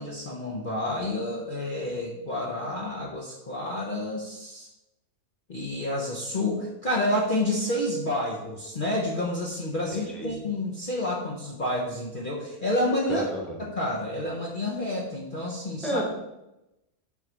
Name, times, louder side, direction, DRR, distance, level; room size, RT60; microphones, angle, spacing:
voice 1, 0.0-4.7 5.5-13.2 13.6-16.0, left 1 dB, 40° left, -3 dB, 1.0 m, -29 dB
voice 2, 9.9-10.4 13.1-13.6 15.8-16.1, right 1 dB, ahead, -1 dB, 1.2 m, -31 dB
8.1 x 3.2 x 6.0 m, 0.93 s
omnidirectional pair, 1.6 m